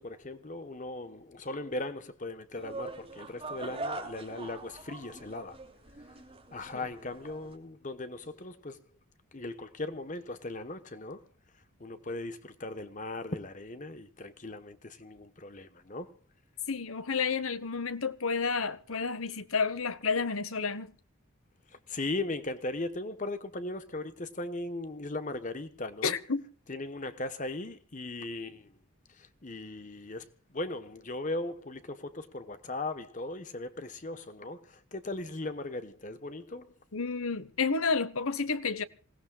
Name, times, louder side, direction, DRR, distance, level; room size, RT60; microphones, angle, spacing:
voice 1, 0.0-5.6 6.1-6.2 6.5-8.8 9.3-11.2 11.8-16.1 21.9-26.1 26.7-28.7 29.1-36.7, left 2 dB, 35° left, 1.1 m, -38 dB
sound 1, 2.5-7.5, right 2 dB, 25° right, 2.9 m, -42 dB
voice 2, 16.7-20.9 26.0-26.4 36.9-38.8, left 5 dB, 75° left, 1.2 m, -30 dB
27.0 x 17.5 x 2.4 m
head